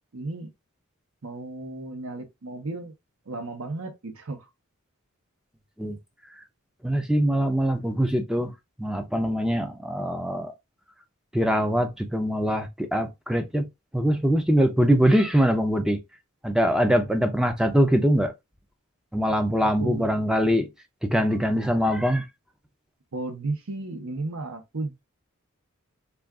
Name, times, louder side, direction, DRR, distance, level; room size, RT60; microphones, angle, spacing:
voice 1, 0.1-0.5 1.2-2.9 3.3-4.4 19.6-20.2 23.1-25.0, right 2 dB, 70° right, 0.8 m, -34 dB
voice 2, 6.8-8.5 8.8-10.5 11.3-13.7 13.9-16.0 16.4-18.3 19.1-20.7 21.0-22.3, equal, 5° right, 0.4 m, -23 dB
2.4 x 2.3 x 3.4 m
head